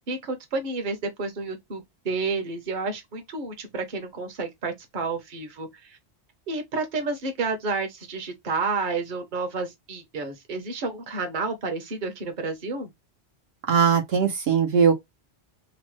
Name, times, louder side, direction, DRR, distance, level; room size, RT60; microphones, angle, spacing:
voice 1, 0.1-6.0 6.5-12.9, right 3 dB, 50° right, 0.9 m, -30 dB
voice 2, 13.7-14.9, right 6 dB, 75° right, 0.9 m, -20 dB
3.0 x 2.0 x 3.1 m
omnidirectional pair, 1.1 m